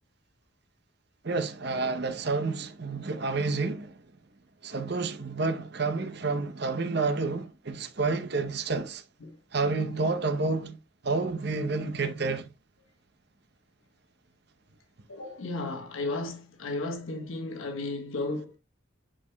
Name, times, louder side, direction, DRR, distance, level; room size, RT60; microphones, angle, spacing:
voice 1, 1.2-3.9 4.6-9.0 9.5-10.8 11.0-12.5, right 3 dB, 50° right, 0.8 m, -29 dB
voice 2, 15.1-18.6, left 2 dB, 80° left, 1.3 m, -34 dB
9.7 x 4.8 x 2.3 m
head